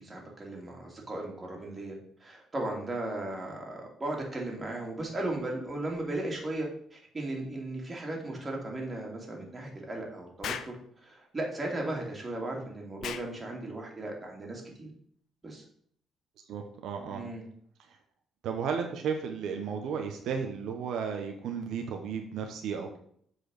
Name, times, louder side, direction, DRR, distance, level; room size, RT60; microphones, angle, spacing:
voice 1, 0.0-10.7 11.0-14.9 15.4-15.6 17.1-17.4, right 2 dB, 20° right, -1 dB, 2.9 m, -36 dB
Explosion, 10.4-10.8 13.0-13.3, left 8 dB, 65° left, 0.7 m, -36 dB
voice 2, 16.5-17.2 18.4-23.0, right 6 dB, 75° right, 4 dB, 1.1 m, -34 dB
7.9 x 4.8 x 6.5 m, 0.64 s
cardioid pair, 120°, 0 cm